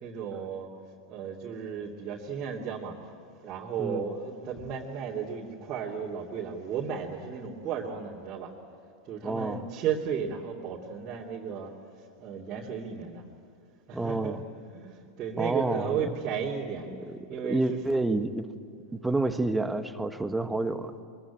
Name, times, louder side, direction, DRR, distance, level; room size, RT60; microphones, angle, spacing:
voice 1, 0.0-0.7 1.1-3.0 3.4-8.5 9.1-11.7 12.2-13.2 13.9-14.4 14.7-16.9 17.3-18.0 20.1-20.5, right 7 dB, 35° right, -4 dB, 2.9 m, -34 dB
voice 2, 9.2-9.7 13.9-14.4 15.4-16.1 16.9-17.2 17.4-18.5 18.9-21.0, right 2 dB, 10° right, 9 dB, 1.4 m, -29 dB
24.0 x 22.5 x 8.8 m, 2.6 s
figure-of-eight pair, 85°, 0 cm